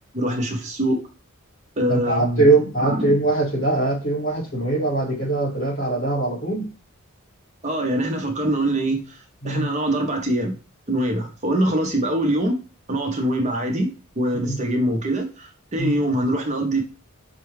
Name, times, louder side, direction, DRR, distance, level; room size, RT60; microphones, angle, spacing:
voice 1, 0.1-1.0 1.8-2.5 2.8-3.1 7.6-9.2 9.4-10.6 10.9-12.6 12.9-16.8, right 1 dB, 30° right, 0.6 m, -23 dB
voice 2, 1.9-6.7 9.4-9.7 14.5-14.6 15.8-16.0, right 2 dB, 60° left, 2.4 m, -22 dB
5.5 x 2.2 x 3.2 m
head